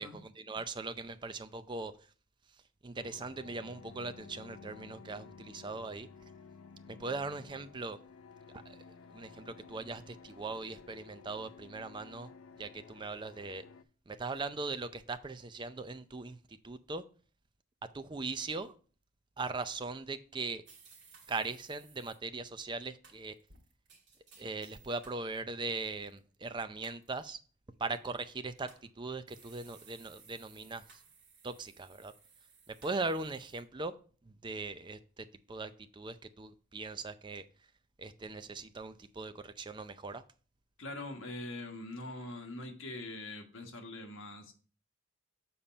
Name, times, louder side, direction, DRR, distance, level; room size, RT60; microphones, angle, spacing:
voice 1, 0.0-1.9 2.8-6.1 6.9-8.0 8.7-8.8 9.1-12.3 12.6-13.6 14.1-16.4 16.6-17.0 17.9-18.8 19.4-20.6 21.3-23.4 24.4-27.4 27.8-30.8 31.4-32.1 32.7-33.9 34.3-37.5 38.0-40.2, right 3 dB, 20° right, 11 dB, 0.5 m, -40 dB
sound 1, 3.0-13.8, left 5 dB, 85° left, 0.5 m, -54 dB
sound 2, 20.7-22.2 23.0-25.2 25.7-26.2 26.8-27.3 28.2-28.9 29.3-33.6, right 5 dB, 60° right, 2.3 m, -60 dB
voice 2, 40.8-44.5, left 2 dB, 70° left, 3 dB, 1.5 m, -43 dB
7.0 x 4.3 x 5.1 m, 0.39 s
head